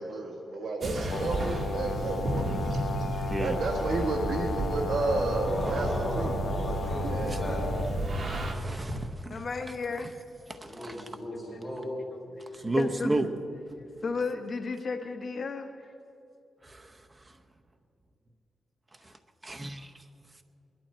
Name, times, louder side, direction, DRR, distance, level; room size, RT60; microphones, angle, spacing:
voice 1, 0.0-2.5 3.4-5.9 6.2-6.3 7.1-7.4, right 3 dB, 75° right, 1.4 m, -31 dB
sound 1, 0.8-8.5, right 1 dB, 45° right, 1.6 m, -32 dB
Brass instrument, 1.1-8.1, left 6 dB, 60° left, 0.6 m, -37 dB
voice 2, 5.4-7.6 10.6-11.9, equal, 5° left, 4.4 m, -37 dB
voice 3, 8.5-9.4 10.5-11.0 12.5-13.3 16.6-16.9 19.0-19.1 19.4-19.9, right 1 dB, 20° right, 0.7 m, -32 dB
voice 4, 9.3-10.1 12.3-13.1 14.0-15.9, left 4 dB, 45° left, 1.0 m, -34 dB
21.0 x 12.0 x 4.4 m
wide cardioid pair, 130°, 0 cm